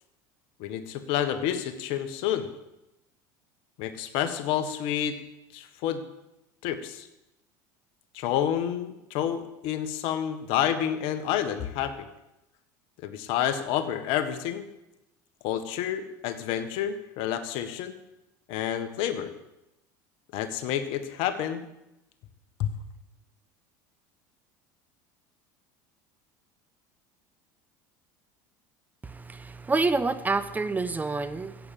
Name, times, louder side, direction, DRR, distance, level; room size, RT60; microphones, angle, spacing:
voice 1, 0.6-2.5 3.8-5.1 5.5-6.0 6.6-7.1 8.1-12.1 13.0-14.7 15.4-17.9 18.5-19.3 20.3-21.6 22.6-22.7, left 10 dB, 65° left, 9 dB, 1.6 m, -29 dB
voice 2, 29.0-31.7, right 3 dB, 15° right, 13 dB, 0.8 m, -28 dB
14.5 x 8.5 x 7.7 m, 0.93 s
supercardioid pair, 95°, 10 cm